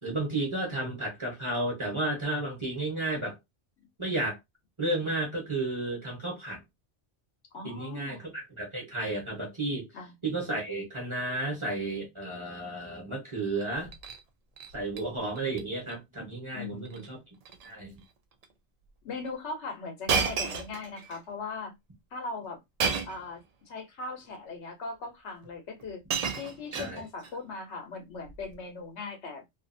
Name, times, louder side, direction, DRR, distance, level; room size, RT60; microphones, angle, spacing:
voice 1, 0.0-3.4 4.0-4.4 4.8-6.6 7.6-8.2 8.6-9.9 10.2-13.9 14.7-17.2 17.6-18.0 26.7-27.0, right 2 dB, 30° right, 1.0 m, -32 dB
voice 2, 7.5-8.3 9.9-10.1 16.5-17.0 19.0-21.7 22.1-22.6 23.0-23.4 23.7-26.0 26.3-29.4, left 3 dB, 80° left, 1.2 m, -39 dB
Shatter, 13.7-14.2 14.6-15.0 15.4-15.6 15.9-16.0 16.9-17.1 17.4-17.7 18.4-18.5 20.1-21.2 22.8-23.3 24.3-24.4 25.4-25.5 25.8-27.3 28.3-28.5, right 6 dB, 60° right, 0.4 m, -32 dB
2.7 x 2.5 x 2.6 m
omnidirectional pair, 1.1 m